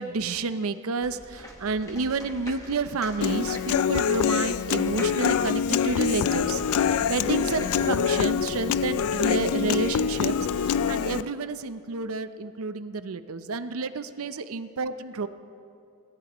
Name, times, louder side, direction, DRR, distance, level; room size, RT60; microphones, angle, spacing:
voice 1, 0.0-6.6 6.9-15.3, right 4 dB, 85° right, 11 dB, 0.6 m, -30 dB
sound 1, 1.0-8.3, left 1 dB, 15° left, 1.3 m, -44 dB
Human voice / Acoustic guitar, 3.2-11.2, left 8 dB, 85° left, 0.3 m, -25 dB
sound 2, 4.9-10.7, equal, 50° right, 3.5 m, -42 dB
26.0 x 14.5 x 3.0 m, 2.5 s
head